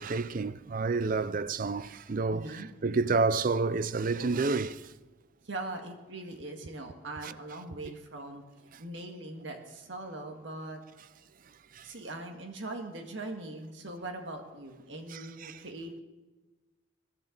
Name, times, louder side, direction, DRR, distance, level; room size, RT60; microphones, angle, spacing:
voice 1, 0.0-4.9 7.2-7.3 11.7-11.9 15.1-15.6, right 4 dB, 45° right, 0.4 m, -30 dB
voice 2, 2.3-2.7 5.4-8.4 8.8-10.8 11.8-16.0, right 2 dB, 65° right, 1.8 m, -41 dB
21.5 x 11.5 x 3.9 m
head